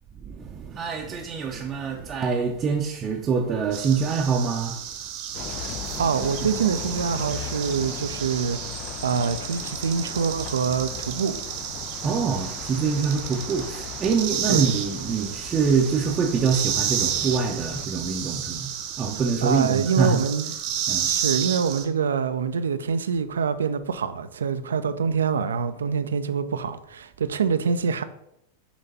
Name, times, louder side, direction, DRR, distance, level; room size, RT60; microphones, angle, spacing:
voice 1, 0.2-4.8 6.4-6.5 12.0-20.2 20.9-21.1, right 5 dB, 25° right, 0.6 m, -25 dB
sound 1, 3.7-21.8, right 9 dB, 45° right, 0.9 m, -32 dB
Bus, 5.3-17.9, left 10 dB, 40° left, 0.4 m, -38 dB
voice 2, 6.0-8.6 9.0-11.4 14.5-14.6 19.4-20.5 21.0-28.0, right 6 dB, 65° right, 0.4 m, -25 dB
7.1 x 3.2 x 5.5 m
figure-of-eight pair, 90°, 0 cm